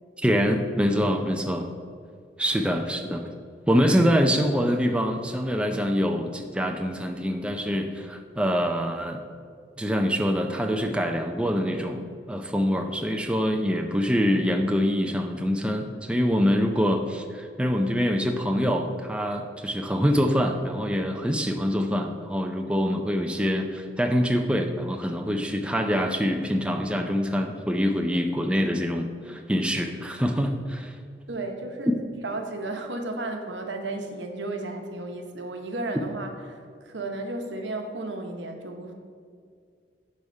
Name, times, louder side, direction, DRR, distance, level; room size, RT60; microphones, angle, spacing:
voice 1, 0.2-1.7 2.4-3.3 3.7-9.2 9.8-31.0 35.9-36.0, equal, 5° right, 4 dB, 0.4 m, -25 dB
voice 2, 31.3-31.9 32.2-38.9, right 2 dB, 90° right, 4 dB, 1.0 m, -33 dB
11.0 x 3.6 x 5.3 m, 2.1 s
head